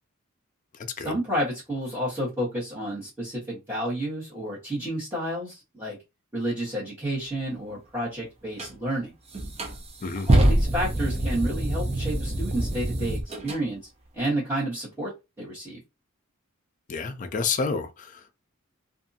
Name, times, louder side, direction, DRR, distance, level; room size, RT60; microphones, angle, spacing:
voice 1, 0.9-6.0 6.3-9.1 10.2-13.8 14.1-15.1 15.4-15.8, right 1 dB, 15° right, 1.2 m, -30 dB
sound 1, 8.6-8.7 9.3-13.6, right 1 dB, 30° right, 0.6 m, -25 dB
voice 2, 16.9-18.3, left 4 dB, 35° left, 0.4 m, -29 dB
2.7 x 2.5 x 2.6 m
head